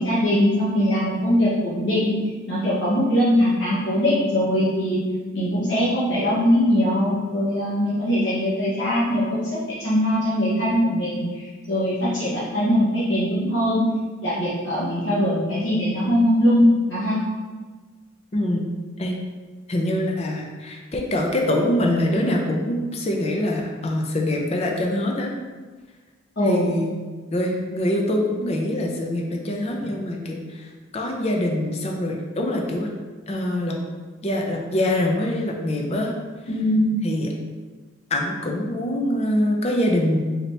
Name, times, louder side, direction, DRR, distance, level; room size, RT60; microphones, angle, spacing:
voice 1, 0.0-2.2 2.5-5.0 5.3-13.8 14.2-17.2 26.4-26.7 36.5-37.0, equal, 70° left, -9 dB, 1.2 m, -21 dB
voice 2, 18.3-18.7 19.0-19.2 19.7-25.3 26.4-26.9 27.3-32.9 33.3-33.8 34.2-36.1 37.0-37.3 38.1-40.2, left 1 dB, 35° left, 1 dB, 0.5 m, -24 dB
4.0 x 2.8 x 3.2 m, 1.4 s
head